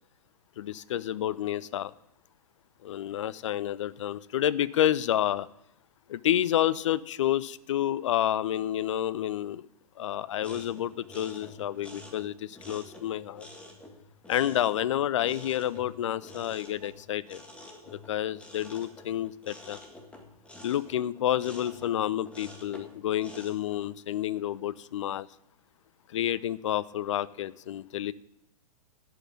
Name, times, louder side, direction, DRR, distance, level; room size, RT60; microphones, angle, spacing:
voice 1, 0.6-1.9 2.8-5.5 6.1-9.7 10.0-13.5 14.3-17.4 17.9-19.8 20.6-25.3 26.1-28.1, left 11 dB, 50° left, 20 dB, 0.5 m, -29 dB
sound 1, 10.4-23.9, left 2 dB, 5° left, 1.6 m, -48 dB
11.5 x 5.8 x 8.4 m, 0.76 s
figure-of-eight pair, 105°, 20 cm